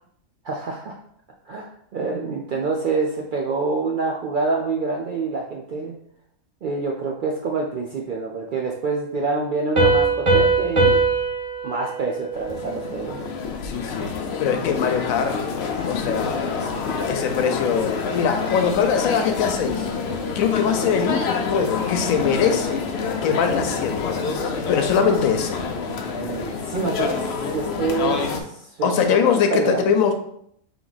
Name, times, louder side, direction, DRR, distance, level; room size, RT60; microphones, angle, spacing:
voice 1, 0.4-1.0 1.5-5.9 6.6-11.0 11.6-13.2 26.1-29.0 29.5-29.9, right 3 dB, 80° right, 0 dB, 0.4 m, -26 dB
Piano, 9.8-13.2, right 3 dB, 25° right, 0.8 m, -21 dB
sound 1, 12.3-28.4, left 5 dB, 60° left, 0.7 m, -27 dB
voice 2, 13.6-14.1 14.4-15.4 15.9-16.4 17.1-19.9 20.3-22.8 23.2-25.6 28.8-30.1, left 6 dB, 80° left, 6 dB, 1.0 m, -22 dB
3.4 x 3.0 x 3.9 m, 0.70 s
omnidirectional pair, 1.4 m